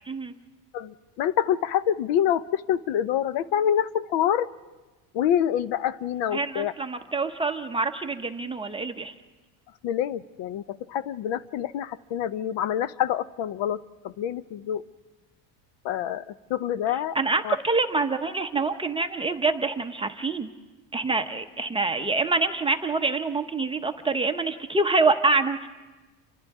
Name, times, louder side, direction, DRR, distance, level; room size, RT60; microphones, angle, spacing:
voice 1, 0.7-4.5 5.1-6.7 9.8-14.8 15.8-16.2 16.5-17.2 17.4-17.6, left 10 dB, 60° left, 16 dB, 0.7 m, -26 dB
voice 2, 6.3-9.1 17.1-20.5 20.9-25.7, right 3 dB, 10° right, 6 dB, 0.7 m, -26 dB
29.5 x 24.5 x 3.6 m, 1.2 s
cardioid pair, 135°, 48 cm